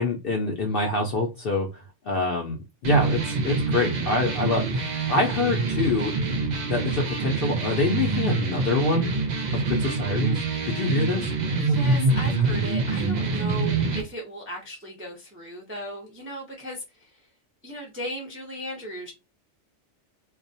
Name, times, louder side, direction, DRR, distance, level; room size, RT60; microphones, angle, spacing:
voice 1, 0.0-1.7 2.1-2.6 2.8-6.1 6.6-9.1 9.5-11.3, left 2 dB, 60° left, 0.6 m, -25 dB
sound 1, 2.8-14.0, right 3 dB, 90° right, 0.3 m, -26 dB
voice 2, 11.6-17.1 17.6-19.1, right 1 dB, 15° right, 0.4 m, -36 dB
2.3 x 2.1 x 2.6 m
omnidirectional pair, 1.3 m